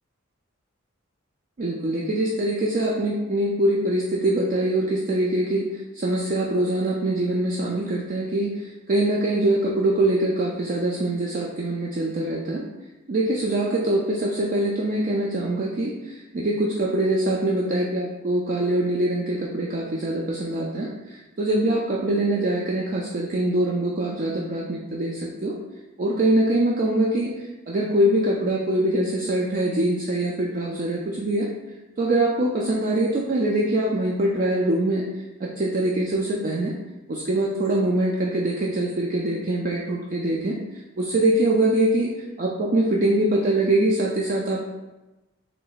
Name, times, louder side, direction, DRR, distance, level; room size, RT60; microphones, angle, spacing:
voice 1, 1.6-12.7 13.1-25.6 26.0-31.5 32.0-35.0 35.4-36.7 37.1-44.6, right 1 dB, 40° right, -2 dB, 0.4 m, -23 dB
3.3 x 2.9 x 4.0 m, 1.1 s
head